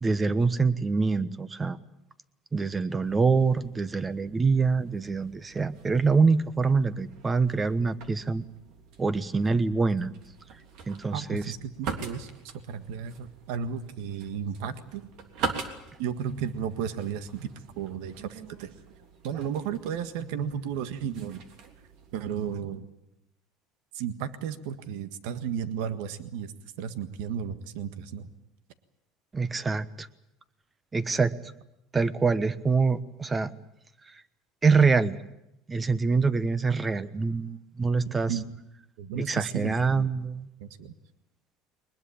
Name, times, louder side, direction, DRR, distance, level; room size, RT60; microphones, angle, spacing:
voice 1, 0.0-1.8 2.5-8.4 9.0-10.1 10.9-11.4 29.3-30.1 30.9-31.3 31.9-33.5 34.6-35.2 35.7-38.4 39.3-40.5, right 4 dB, 20° right, 14 dB, 1.2 m, -25 dB
sound 1, 3.0-22.5, right 5 dB, 65° right, 3.3 m, -43 dB
voice 2, 11.1-12.3 12.7-15.1 16.0-17.5 17.8-18.7 19.2-21.4 22.1-22.9 23.9-26.5 26.8-28.3 38.0-38.4 39.0-40.1 40.6-40.9, right 8 dB, 80° right, 10 dB, 1.6 m, -34 dB
22.0 x 21.0 x 8.6 m, 0.85 s
supercardioid pair, 125°, 0 cm